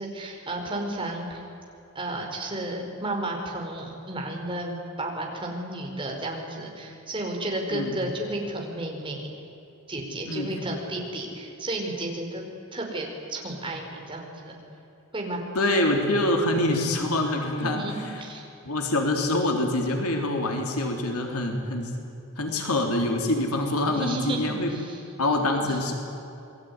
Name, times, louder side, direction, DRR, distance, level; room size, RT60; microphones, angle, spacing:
voice 1, 0.0-1.4 1.9-9.2 9.9-14.6 15.1-15.4 17.5-18.5 23.4-23.5 23.9-25.0 25.5-25.8, right 1 dB, 25° right, 0 dB, 5.0 m, -33 dB
voice 2, 15.5-17.8 18.6-21.9 22.4-24.7 25.2-25.9, left 1 dB, 85° left, 2 dB, 3.6 m, -25 dB
28.0 x 21.0 x 9.7 m, 2.9 s
head